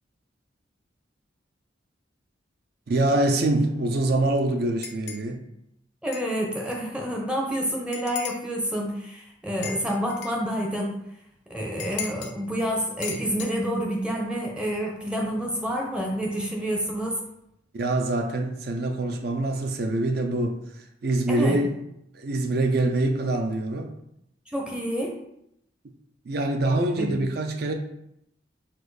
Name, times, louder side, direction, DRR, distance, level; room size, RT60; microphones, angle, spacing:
voice 1, 2.9-5.4 17.7-21.8 22.1-23.9 26.2-27.7, right 2 dB, 50° right, 5 dB, 0.4 m, -25 dB
sound 1, 4.8-5.3 6.1-6.3 6.7-6.8 7.9-8.5 9.6-10.4 11.8-12.3 13.0-13.5, left 7 dB, 65° left, 0.5 m, -36 dB
voice 2, 6.0-11.0 11.5-17.2 21.3-21.6 24.5-25.1 27.0-27.2, equal, 5° right, 0 dB, 0.6 m, -28 dB
4.2 x 2.5 x 4.7 m, 0.79 s
head